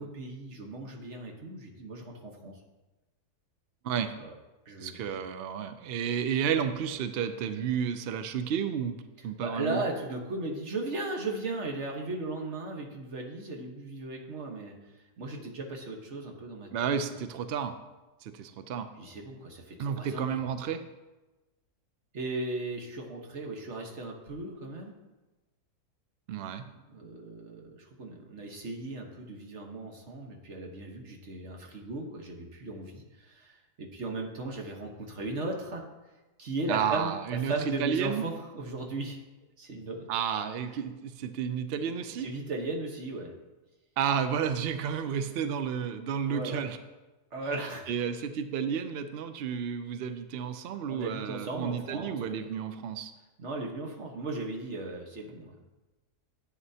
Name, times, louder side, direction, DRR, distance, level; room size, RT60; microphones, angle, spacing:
voice 1, 0.0-2.5 4.2-4.3 4.6-5.1 9.4-16.7 19.0-20.4 22.1-24.9 26.7-35.8 36.4-39.2 39.6-40.1 42.2-43.3 46.3-46.6 47.3-47.9 50.9-52.5 53.4-55.6, right 2 dB, 50° right, 1 dB, 1.4 m, -37 dB
voice 2, 4.8-9.0 9.2-9.8 16.7-17.8 18.2-18.9 19.8-20.8 26.3-26.7 36.7-38.3 40.1-42.3 44.0-46.8 47.4-47.6 47.9-53.1, right 7 dB, 85° right, 10 dB, 0.5 m, -31 dB
11.0 x 8.0 x 2.8 m, 1.1 s
omnidirectional pair, 1.7 m